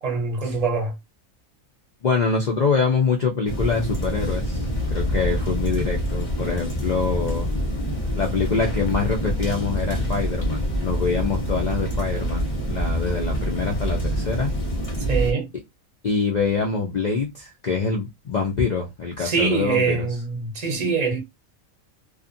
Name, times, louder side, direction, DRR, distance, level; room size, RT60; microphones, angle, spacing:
voice 1, 0.0-0.9 15.1-15.5 19.2-21.2, right 4 dB, 40° right, 0.6 m, -24 dB
voice 2, 2.0-7.5 8.1-14.5 16.0-20.1, left 5 dB, 90° left, 0.3 m, -25 dB
sound 1, 3.5-15.3, equal, 40° left, 0.9 m, -26 dB
2.5 x 2.4 x 2.5 m
omnidirectional pair, 1.4 m